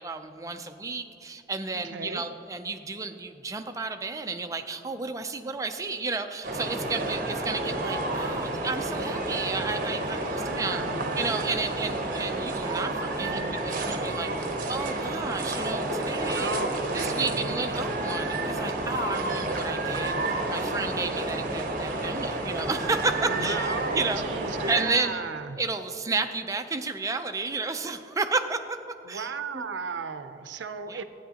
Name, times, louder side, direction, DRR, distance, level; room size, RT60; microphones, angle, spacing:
voice 1, 0.0-10.8 11.2-16.6 16.9-24.2 24.7-25.2 25.6-28.8 29.1-29.6 30.9-31.0, right 3 dB, 20° right, 7 dB, 0.4 m, -32 dB
voice 2, 1.8-2.2 10.4-11.2 13.2-13.6 16.3-17.6 23.3-25.6 29.1-31.0, right 5 dB, 85° right, 10 dB, 0.5 m, -35 dB
sound 1, 6.4-24.8, right 2 dB, 50° right, 0.9 m, -30 dB
12.5 x 9.2 x 2.9 m, 2.9 s
head